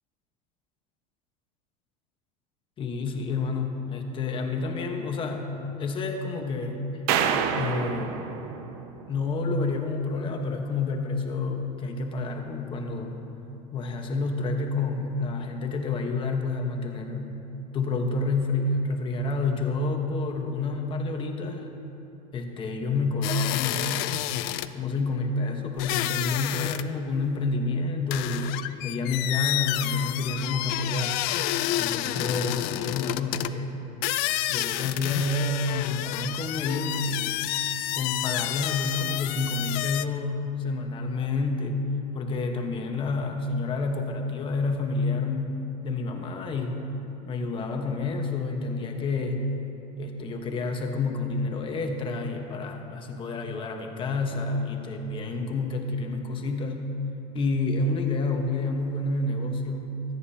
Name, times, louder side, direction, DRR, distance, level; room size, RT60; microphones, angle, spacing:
voice 1, 2.8-5.5 5.8-7.0 7.5-8.2 9.1-13.2 13.7-17.3 17.7-21.7 22.3-23.9 24.7-28.5 28.8-31.2 31.8-33.8 34.5-37.5 38.0-41.8 42.1-45.6 45.8-46.9 47.3-49.4 50.0-56.9 57.3-60.0, left 3 dB, 25° left, 3 dB, 1.2 m, -29 dB
sound 1, 7.1-9.4, right 7 dB, 55° right, 0.8 m, -28 dB
sound 2, 23.2-24.7 25.8-26.9 27.1-27.2 28.1-33.5 34.0-40.0, left 15 dB, 55° left, 0.4 m, -30 dB
25.0 x 9.6 x 2.8 m, 2.9 s
supercardioid pair, 145°, 19 cm